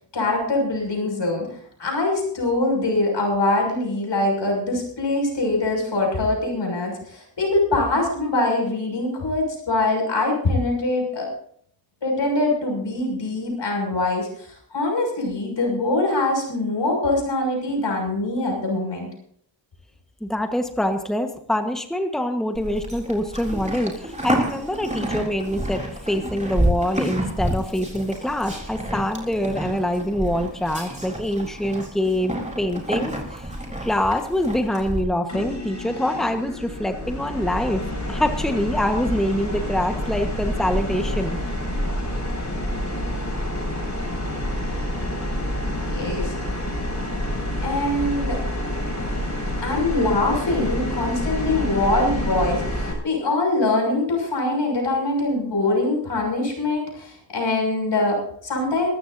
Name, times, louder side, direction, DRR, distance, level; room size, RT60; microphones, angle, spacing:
voice 1, 0.1-11.3 12.0-19.1 45.9-46.3 47.6-48.4 49.6-58.9, left 2 dB, 75° left, 0 dB, 6.5 m, -23 dB
voice 2, 20.2-33.5 33.8-37.8 38.1-41.4, left 1 dB, ahead, 5 dB, 1.3 m, -25 dB
Livestock farm animals working animals, 22.5-35.0, right 1 dB, 15° right, 3.8 m, -29 dB
sound 1, 35.3-52.9, left 1 dB, 40° left, 7.1 m, -28 dB
24.0 x 14.0 x 2.7 m, 0.63 s
wide cardioid pair, 115°, 44 cm